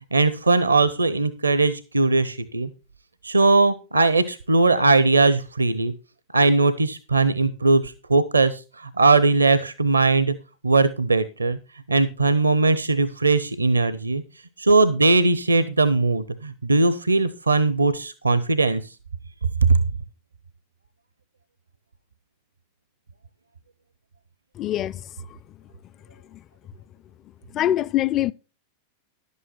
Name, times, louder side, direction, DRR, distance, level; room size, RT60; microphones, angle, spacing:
voice 1, 0.1-2.7 3.2-5.9 6.3-10.3 10.6-11.6 11.9-14.2 14.6-18.8 19.6-19.8, right 3 dB, 80° right, 0.7 m, -19 dB
voice 2, 24.6-25.1 26.3-26.4 27.5-28.3, left 12 dB, 30° left, 0.4 m, -24 dB
11.0 x 8.4 x 4.3 m
figure-of-eight pair, 90°, 0 cm